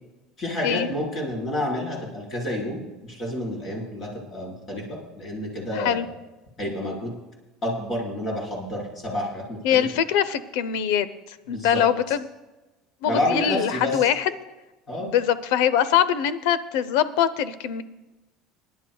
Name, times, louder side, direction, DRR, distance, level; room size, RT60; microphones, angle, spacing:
voice 1, 0.4-4.8 5.1-6.0 6.6-7.1 7.6-9.8 11.5-11.8 13.0-13.9 14.9-15.1, left 1 dB, 25° left, -3 dB, 4.6 m, -29 dB
voice 2, 5.7-6.1 9.6-11.1 11.5-12.3 13.0-14.3 15.0-17.8, left 9 dB, 80° left, 15 dB, 0.7 m, -23 dB
25.0 x 11.0 x 2.3 m, 1.1 s
cardioid pair, 160°, 0 cm